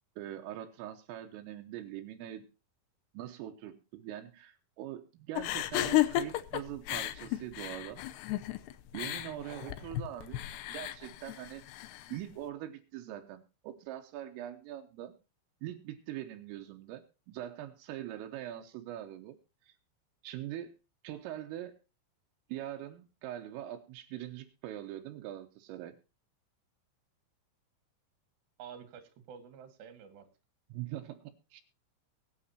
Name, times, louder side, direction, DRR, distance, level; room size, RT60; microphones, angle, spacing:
voice 1, 0.2-2.5 3.1-8.0 8.9-10.4 10.7-11.6 12.1-15.1 15.6-19.4 19.6-19.8 20.2-20.7 21.0-21.7 22.5-25.9 30.7-31.6, right 12 dB, 85° right, 5 dB, 3.7 m, -42 dB
sound 1, 5.3-12.2, left 15 dB, 90° left, 2.3 m, -34 dB
voice 2, 28.6-30.3, right 7 dB, 65° right, 9 dB, 3.8 m, -50 dB
23.0 x 9.2 x 2.8 m, 0.28 s
omnidirectional pair, 5.8 m